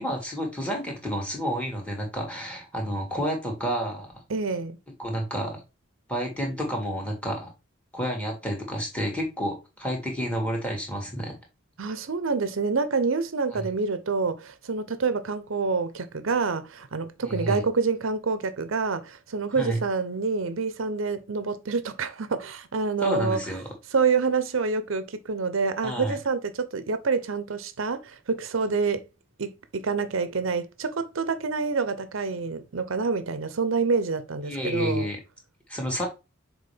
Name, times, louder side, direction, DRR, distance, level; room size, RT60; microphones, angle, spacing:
voice 1, 0.0-4.1 5.0-5.6 6.1-7.5 7.9-11.4 17.2-17.6 19.5-19.8 23.0-23.6 25.8-26.2 34.5-35.2 35.7-36.1, equal, 5° left, 2.1 m, -30 dB
voice 2, 4.3-4.8 11.8-23.4 23.9-29.0 29.4-35.1, right 4 dB, 75° right, 0.7 m, -27 dB
6.7 x 4.4 x 3.4 m
head